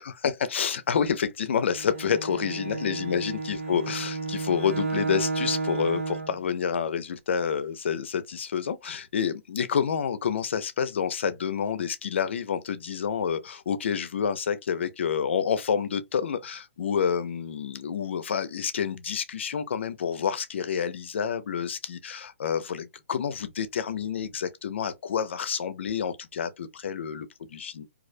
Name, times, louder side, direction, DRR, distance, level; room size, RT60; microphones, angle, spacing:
voice 1, 0.0-27.8, left 7 dB, 60° left, 0.5 m, -28 dB
Bowed string instrument, 1.7-6.4, right 3 dB, 85° right, 0.6 m, -32 dB
2.4 x 2.1 x 2.5 m
hypercardioid pair, 165°, 7 cm